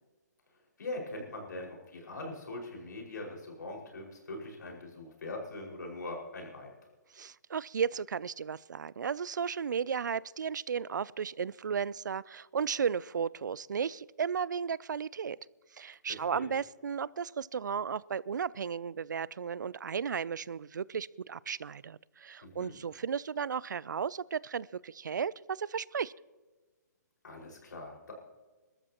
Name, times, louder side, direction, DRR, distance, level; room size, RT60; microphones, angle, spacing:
voice 1, 0.8-6.7 16.1-16.5 22.4-22.8 27.2-28.1, left 2 dB, 80° left, 0 dB, 5.3 m, -42 dB
voice 2, 7.1-15.4 15.7-26.1, right 7 dB, 90° right, 23 dB, 0.4 m, -34 dB
25.5 x 13.0 x 2.9 m, 1.3 s
hypercardioid pair, 150°, 10 cm